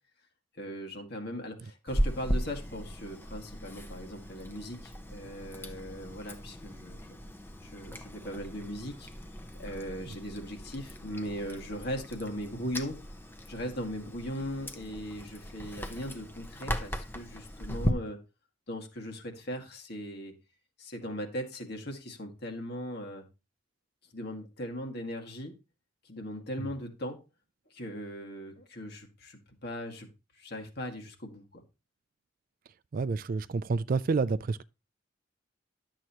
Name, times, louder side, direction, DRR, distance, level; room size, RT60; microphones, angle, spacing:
voice 1, 0.6-7.1 7.6-9.1 9.6-12.9 13.5-18.2 18.7-20.3 20.8-23.2 24.1-25.5 26.0-27.2 27.7-30.1 30.4-31.6, equal, 55° left, 2.0 m, -39 dB
Chewing mastication, 1.9-17.9, equal, 10° left, 0.8 m, -37 dB
voice 2, 32.9-34.6, right 4 dB, 45° right, 0.4 m, -29 dB
11.0 x 7.6 x 3.0 m
head